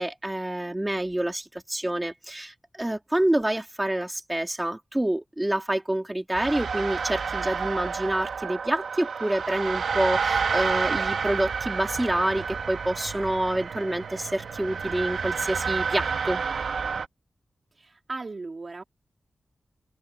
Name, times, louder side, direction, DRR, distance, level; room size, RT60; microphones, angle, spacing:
voice 1, 0.0-16.4, right 1 dB, 10° right, 2.8 m, -27 dB
sound 1, 6.3-17.1, right 5 dB, 85° right, 1.8 m, -29 dB
voice 2, 17.8-18.8, right 3 dB, 40° right, 2.0 m, -37 dB
wide cardioid pair, 125°, 0 cm